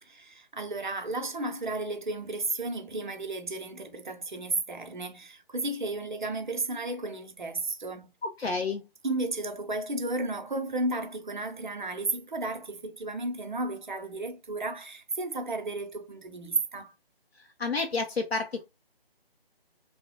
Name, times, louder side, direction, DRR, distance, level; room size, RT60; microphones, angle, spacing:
voice 1, 0.0-8.1 9.0-16.9, right 2 dB, 50° right, 0.6 m, -33 dB
voice 2, 8.2-8.8 17.6-18.6, left 4 dB, 85° left, 0.6 m, -30 dB
3.1 x 2.1 x 2.6 m
figure-of-eight pair, 155°, 30 cm